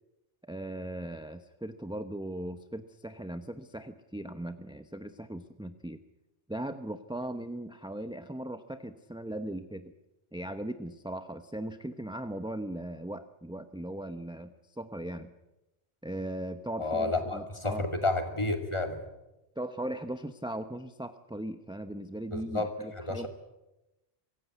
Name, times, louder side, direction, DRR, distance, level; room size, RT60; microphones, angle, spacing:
voice 1, 0.4-6.0 6.5-9.9 10.3-15.3 16.0-17.9 19.6-23.3, right 1 dB, 5° right, 9 dB, 0.8 m, -38 dB
voice 2, 16.8-19.0 22.3-23.3, left 2 dB, 25° left, 6 dB, 2.5 m, -31 dB
24.0 x 16.0 x 9.4 m, 0.97 s
omnidirectional pair, 1.2 m